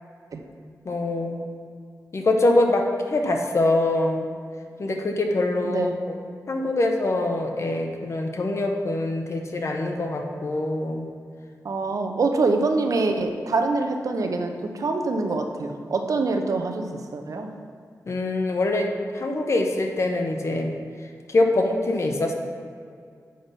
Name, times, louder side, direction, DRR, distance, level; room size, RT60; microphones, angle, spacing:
voice 1, 0.9-1.4 2.1-4.3 4.8-6.2 6.5-11.1 18.1-20.7 21.3-22.3, left 2 dB, 45° left, 3 dB, 0.9 m, -24 dB
voice 2, 5.6-6.0 11.6-17.5, right 3 dB, 60° right, 5 dB, 0.8 m, -25 dB
7.8 x 5.5 x 5.3 m, 2.2 s
wide cardioid pair, 100°, 6 cm